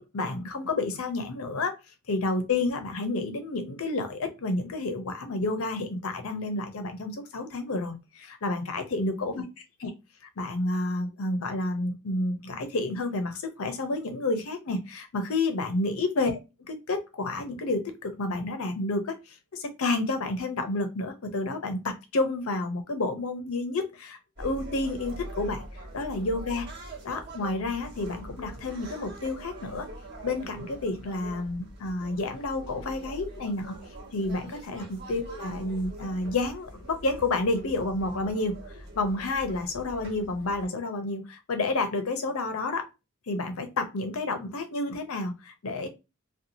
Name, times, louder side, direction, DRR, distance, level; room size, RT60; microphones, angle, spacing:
voice 1, 0.0-1.7 2.1-9.4 9.8-9.9 10.4-16.3 16.9-25.6 25.9-26.7 27.0-29.9 30.2-33.7 34.1-38.6 38.9-42.9 43.3-45.9, left 2 dB, 80° left, 7 dB, 0.6 m, -30 dB
sound 1, 24.4-40.7, right 1 dB, 50° right, 1.1 m, -43 dB
2.7 x 2.3 x 2.6 m, 0.26 s
head